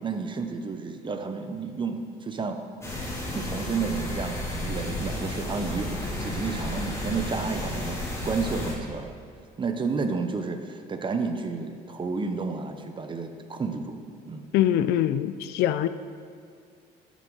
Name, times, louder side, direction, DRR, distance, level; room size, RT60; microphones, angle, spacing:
voice 1, 0.0-2.6 3.3-9.1 9.6-14.0 14.3-14.5, right 4 dB, 30° right, 7 dB, 0.8 m, -31 dB
sound 1, 2.8-8.7, left 1 dB, 15° left, 2.2 m, -32 dB
voice 2, 14.5-15.9, left 11 dB, 85° left, 13 dB, 0.4 m, -23 dB
12.5 x 6.1 x 3.9 m, 2.2 s
cardioid pair, 110°, 17 cm